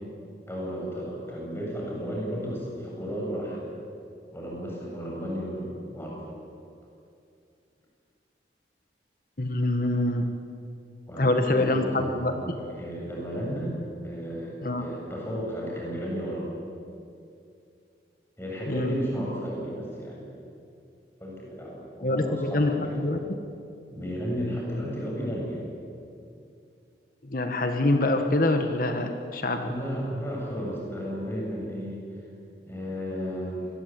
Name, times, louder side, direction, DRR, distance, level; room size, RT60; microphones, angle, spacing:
voice 1, 0.5-3.7 4.3-6.2 11.1-13.8 14.0-16.5 18.4-20.3 21.2-22.9 23.9-25.6 29.6-32.0 32.6-33.7, equal, 15° left, -3 dB, 7.6 m, -33 dB
voice 2, 9.4-10.3 11.2-12.4 14.6-14.8 18.7-19.0 22.0-23.4 27.2-29.7, left 2 dB, 50° left, 6 dB, 1.6 m, -25 dB
26.5 x 20.0 x 9.0 m, 2.5 s
head